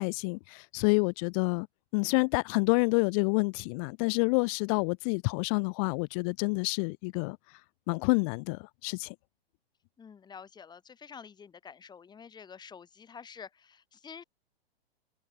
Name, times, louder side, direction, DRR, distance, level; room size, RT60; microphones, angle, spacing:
voice 1, 0.0-1.7 1.9-7.4 7.9-9.1, left 34 dB, 35° left, 0.7 m, -28 dB
voice 2, 10.0-14.2, left 6 dB, 15° left, 1.7 m, -48 dB
hypercardioid pair, 130°, 31 cm